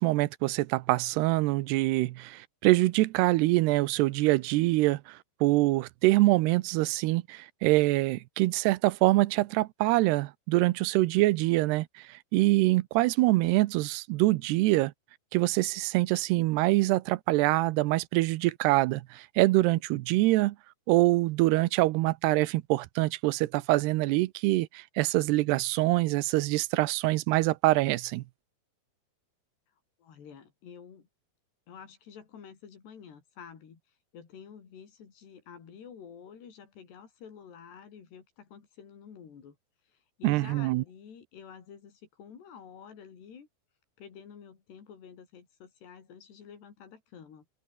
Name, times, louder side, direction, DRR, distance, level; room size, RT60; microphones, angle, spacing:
voice 1, 0.0-11.9 12.3-14.9 15.3-20.6 20.9-28.2 40.2-40.8, right 19 dB, 90° right, 2.8 m, -25 dB
voice 2, 30.0-31.1 31.7-33.8 34.1-39.6 39.9-43.5 44.0-47.4, left 7 dB, 85° left, 6.2 m, -49 dB
open air
omnidirectional pair, 4.7 m